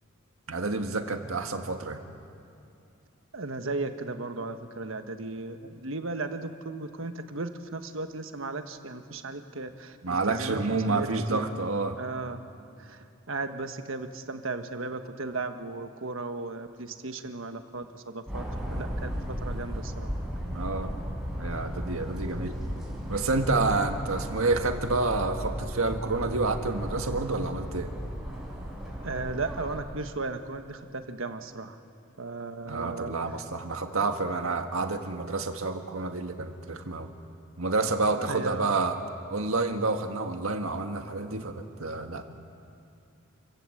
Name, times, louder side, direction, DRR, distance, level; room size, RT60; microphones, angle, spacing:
voice 1, 0.5-2.0 10.0-12.0 20.4-20.9 21.4-22.6 23.1-27.9 32.7-37.1 37.6-38.9 39.3-42.2, right 3 dB, 85° right, 6 dB, 1.7 m, -29 dB
voice 2, 3.3-11.5 12.0-12.4 12.8-18.4 18.7-20.1 29.0-31.8 32.2-33.1 33.9-34.0 38.1-38.7, right 3 dB, 70° right, 7 dB, 1.4 m, -36 dB
sound 1, 18.3-29.8, equal, ahead, 5.5 m, -35 dB
28.5 x 16.0 x 7.9 m, 2.6 s
head